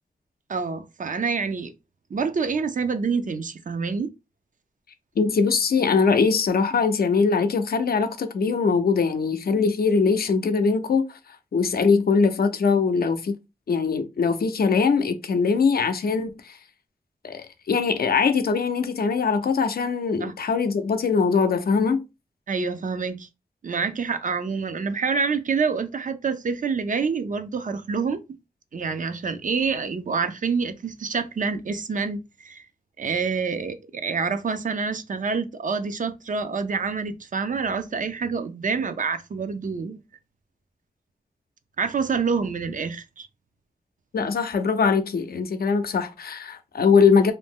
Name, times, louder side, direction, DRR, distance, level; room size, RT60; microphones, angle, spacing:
voice 1, 0.5-1.7 2.1-4.1 20.2-20.3 22.5-23.3 23.6-28.2 28.7-32.6 33.0-40.0 41.8-43.3, right 5 dB, 55° right, 0.4 m, -27 dB
voice 2, 5.2-11.0 11.5-13.3 13.7-16.6 17.2-22.0 44.1-47.3, left 5 dB, 75° left, 0.4 m, -22 dB
2.6 x 2.0 x 3.5 m
wide cardioid pair, 60°, 16 cm